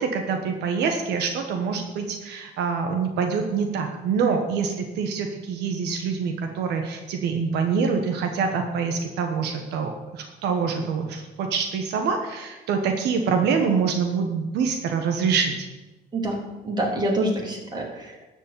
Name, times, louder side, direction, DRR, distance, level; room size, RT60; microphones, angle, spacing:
voice 1, 0.0-15.5, right 5 dB, 80° right, 4 dB, 1.4 m, -25 dB
voice 2, 16.6-18.3, right 1 dB, 25° right, -1 dB, 3.5 m, -26 dB
12.5 x 5.4 x 8.7 m, 1.1 s
cardioid pair, 110°, 17 cm